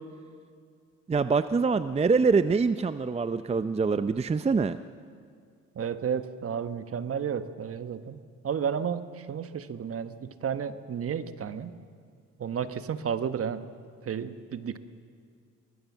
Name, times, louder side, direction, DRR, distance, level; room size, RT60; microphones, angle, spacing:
voice 1, 1.1-4.8, right 4 dB, 20° right, 13 dB, 0.6 m, -25 dB
voice 2, 5.8-8.2 8.4-11.7 12.4-13.6 14.1-14.8, right 7 dB, 50° right, 12 dB, 1.2 m, -32 dB
24.0 x 19.0 x 7.3 m, 2.2 s
cardioid pair, 90°, 30 cm